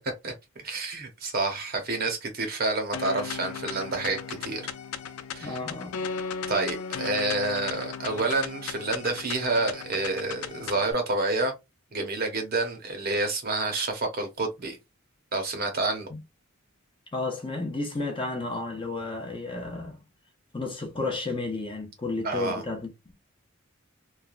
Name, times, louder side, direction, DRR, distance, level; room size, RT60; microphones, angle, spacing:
voice 1, 0.2-4.6 5.3-5.6 6.5-11.5 11.9-14.8 15.3-16.1 22.2-22.6, right 3 dB, 45° right, 0.8 m, -28 dB
sound 1, 2.9-10.9, left 6 dB, 90° left, 0.4 m, -36 dB
voice 2, 5.4-6.0 16.1-16.2 17.1-20.0 20.5-22.9, left 3 dB, 25° left, 0.6 m, -32 dB
3.1 x 2.3 x 2.4 m
head